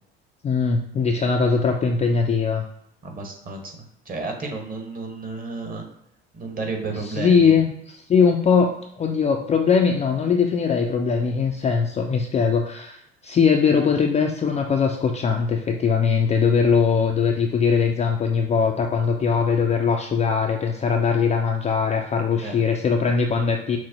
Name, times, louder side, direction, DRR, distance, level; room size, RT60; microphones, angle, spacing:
voice 1, 0.4-2.6 7.1-23.8, left 5 dB, 20° left, 2 dB, 0.4 m, -21 dB
voice 2, 3.0-3.7 4.0-5.8 6.3-7.5 22.3-22.6, right 3 dB, 30° right, 2 dB, 1.2 m, -32 dB
6.1 x 2.1 x 2.9 m, 0.74 s
hypercardioid pair, 65°, 31 cm